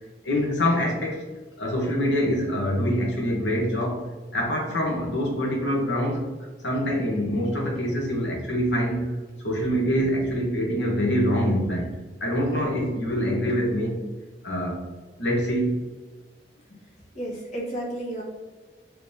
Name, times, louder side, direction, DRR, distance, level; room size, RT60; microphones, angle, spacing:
voice 1, 0.2-1.2 1.6-4.0 4.3-9.1 9.4-11.9 12.2-14.0 14.4-14.8 15.2-15.7, equal, 85° left, -1 dB, 1.0 m, -25 dB
voice 2, 16.8-18.2, right 1 dB, 45° left, -4 dB, 1.1 m, -33 dB
3.3 x 3.0 x 2.7 m, 1.3 s
head